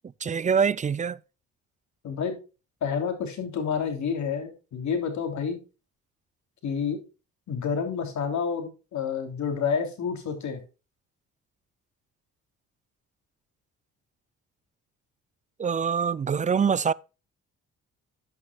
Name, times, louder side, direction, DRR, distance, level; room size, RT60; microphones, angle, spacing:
voice 1, 0.2-1.2 15.6-16.9, right 6 dB, 25° right, 0.4 m, -24 dB
voice 2, 2.0-2.4 2.8-5.6 6.6-7.0 7.5-10.6, left 6 dB, 70° left, 3.1 m, -29 dB
11.0 x 9.1 x 2.3 m
cardioid pair, 90°, 30 cm